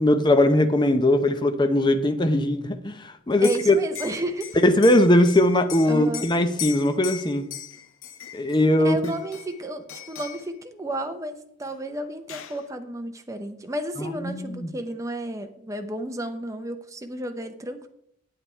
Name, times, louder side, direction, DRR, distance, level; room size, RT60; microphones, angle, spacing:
voice 1, 0.0-3.8 4.6-7.5 8.3-9.1 14.2-14.7, left 1 dB, 25° left, 8 dB, 0.6 m, -20 dB
Liquid, 3.3-8.6 9.0-9.6 9.9-10.5 11.6-11.7 12.0-12.6, left 9 dB, 90° left, 0.7 m, -38 dB
voice 2, 3.4-4.6 5.9-6.3 8.8-17.9, right 1 dB, 15° right, 6 dB, 0.8 m, -32 dB
8.4 x 8.3 x 4.4 m, 0.71 s
head